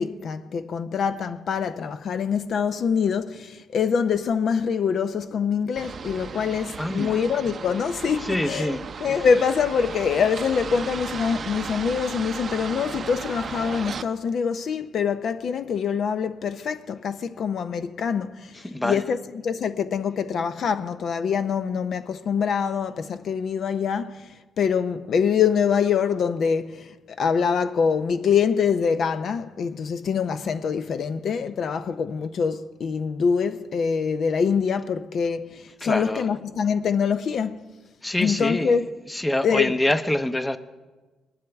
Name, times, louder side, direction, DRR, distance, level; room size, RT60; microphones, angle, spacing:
voice 1, 0.0-37.6 38.2-38.9 39.4-39.8, left 6 dB, 60° left, 0.5 m, -25 dB
sound 1, 5.8-14.0, right 6 dB, 45° right, 0.5 m, -35 dB
voice 2, 6.8-7.2 8.2-8.8 18.6-19.0 35.8-36.3 38.0-38.8 39.1-40.6, left 1 dB, 10° left, 0.7 m, -25 dB
21.0 x 11.0 x 3.5 m
cardioid pair, 90°, 0 cm